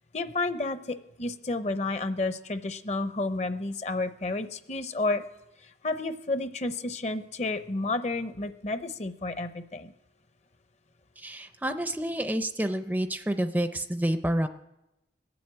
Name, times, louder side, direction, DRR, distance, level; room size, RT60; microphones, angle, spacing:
voice 1, 0.1-5.2 5.6-9.9, left 2 dB, 35° left, 11 dB, 0.6 m, -31 dB
voice 2, 11.2-14.5, right 1 dB, 10° right, 9 dB, 0.4 m, -29 dB
20.5 x 7.8 x 8.6 m, 0.94 s
head